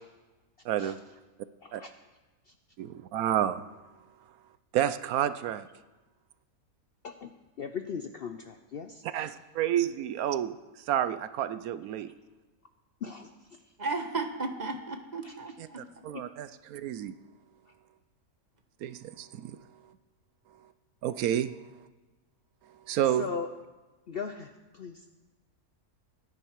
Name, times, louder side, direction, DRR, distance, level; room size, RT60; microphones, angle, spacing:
voice 1, 0.6-1.0 1.7-1.8 2.8-3.6 4.7-5.7 9.1-10.6 10.9-12.1 15.8-17.1 18.8-19.6 21.0-21.6 22.9-23.3, right 11 dB, 75° right, 13 dB, 1.0 m, -30 dB
voice 2, 7.6-9.3 13.0-13.3 15.2-15.4 16.1-16.2 23.2-23.5 24.1-25.0, left 6 dB, 60° left, 8 dB, 0.6 m, -38 dB
voice 3, 13.8-15.8 16.1-16.2, right 3 dB, 30° right, 5 dB, 1.2 m, -34 dB
17.0 x 10.0 x 4.6 m, 1.2 s
omnidirectional pair, 1.6 m